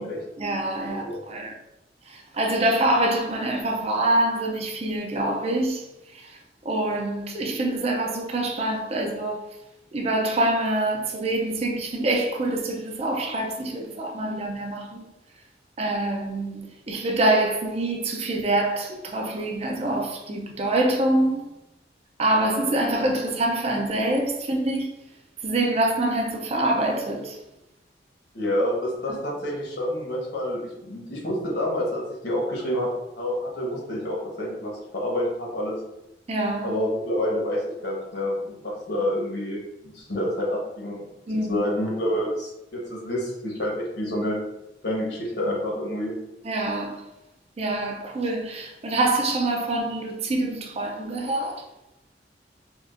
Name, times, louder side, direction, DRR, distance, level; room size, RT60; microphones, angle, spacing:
voice 1, 0.4-1.5 2.1-5.8 6.1-6.4 6.6-9.4 9.9-15.0 15.8-21.4 22.2-24.9 25.4-27.4 29.1-29.2 36.3-36.7 41.3-41.6 46.4-47.0 47.6-51.6, right 1 dB, 35° right, 0.5 m, -25 dB
voice 2, 0.9-1.2 28.3-32.9 33.2-35.8 36.6-41.0 41.5-44.4 44.8-46.1, left 1 dB, 65° left, 1.2 m, -28 dB
4.5 x 2.4 x 2.5 m
head